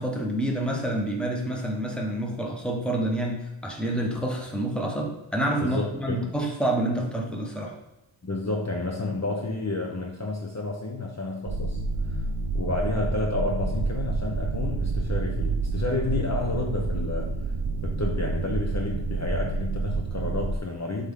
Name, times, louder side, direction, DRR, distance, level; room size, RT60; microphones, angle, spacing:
voice 1, 0.0-3.4 3.6-7.7, right 1 dB, ahead, -1 dB, 1.2 m, -28 dB
voice 2, 5.6-6.2 8.2-11.8 12.0-12.3 12.5-17.3 17.8-21.1, left 2 dB, 35° left, -1 dB, 0.9 m, -30 dB
sound 1, 11.4-20.6, right 3 dB, 55° right, 0.7 m, -28 dB
7.9 x 3.6 x 3.8 m, 0.99 s
wide cardioid pair, 100°, 48 cm